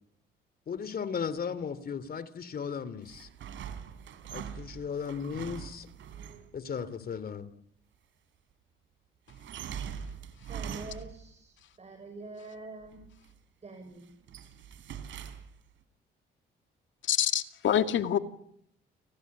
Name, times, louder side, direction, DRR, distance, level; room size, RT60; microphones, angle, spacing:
voice 1, 0.7-3.3 4.3-5.9 6.5-7.5, left 6 dB, 50° left, 16 dB, 2.9 m, -36 dB
sound 1, 3.0-6.5 9.3-11.3 12.8-13.4 13.8-15.7, right 8 dB, 75° right, 3.9 m, -42 dB
voice 2, 10.5-11.5 11.8-13.0 13.6-14.1, right 3 dB, 35° right, 7 dB, 6.1 m, -45 dB
voice 3, 17.1-18.2, left 10 dB, 70° left, 8 dB, 2.3 m, -26 dB
29.5 x 19.0 x 9.6 m, 0.72 s
cardioid pair, 90°, 20 cm